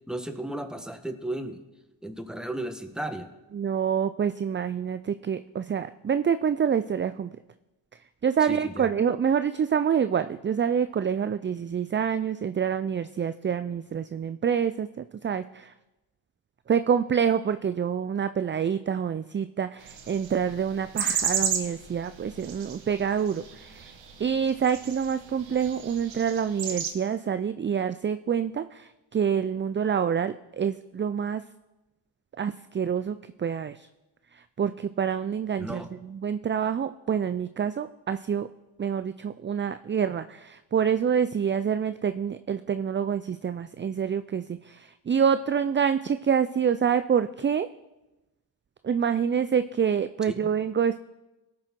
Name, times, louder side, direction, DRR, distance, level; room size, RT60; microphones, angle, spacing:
voice 1, 0.1-1.6 2.0-3.3 8.5-8.9 35.6-35.9, right 1 dB, ahead, 7 dB, 1.6 m, -34 dB
voice 2, 3.5-7.4 7.9-15.7 16.7-31.4 32.4-33.9 34.3-38.5 38.8-47.7 48.8-51.0, right 7 dB, 25° right, 12 dB, 0.5 m, -27 dB
sound 1, 19.8-26.9, right 7 dB, 70° right, 1.5 m, -33 dB
17.5 x 6.3 x 4.5 m, 1.0 s
supercardioid pair, 45°, 47 cm